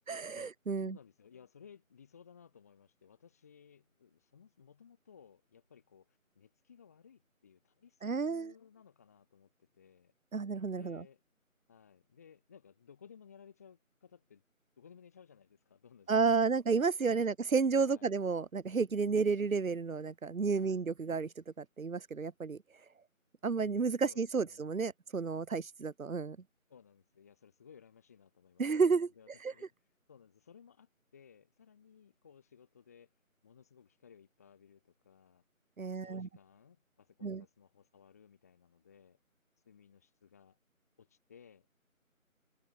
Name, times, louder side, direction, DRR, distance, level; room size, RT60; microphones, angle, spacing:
voice 1, 0.1-1.0 8.0-8.5 10.3-11.0 16.1-21.3 21.6-22.6 23.4-26.4 28.6-29.1 29.4-29.5 35.8-36.3 37.2-37.4, right 5 dB, 70° right, 1.0 m, -31 dB
voice 2, 0.8-10.1 10.8-11.2 11.7-14.4 14.8-16.6 17.1-17.3 17.8-18.1 20.5-20.9 23.9-24.7 26.7-33.1 33.4-35.4 35.8-39.2 39.6-40.6 41.0-41.7, left 7 dB, 10° left, 6.1 m, -60 dB
figure-of-eight pair, 175°, 42 cm